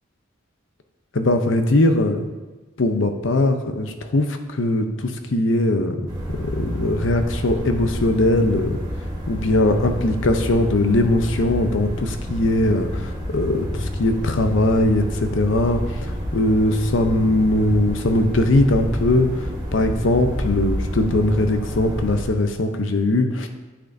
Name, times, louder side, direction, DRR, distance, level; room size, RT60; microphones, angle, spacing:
voice 1, 1.1-2.3 2.8-8.8 9.3-23.5, left 1 dB, 75° left, 7 dB, 0.7 m, -20 dB
sound 1, 6.1-22.2, equal, 20° right, 1.2 m, -29 dB
10.0 x 6.1 x 2.7 m, 1.2 s
head